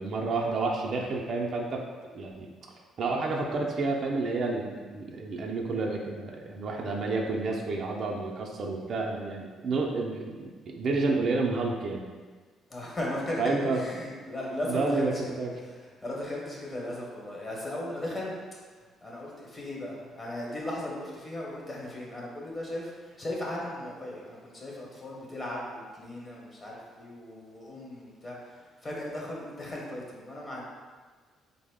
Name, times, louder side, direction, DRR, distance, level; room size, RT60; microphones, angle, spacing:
voice 1, 0.0-1.8 2.1-2.5 3.0-12.1 13.4-13.8 14.7-15.5, right 3 dB, 55° right, 0 dB, 0.4 m, -30 dB
voice 2, 12.7-18.3 19.0-30.6, left 1 dB, 30° left, -3 dB, 1.0 m, -37 dB
3.7 x 2.0 x 3.5 m, 1.5 s
cardioid pair, 85°, 0 cm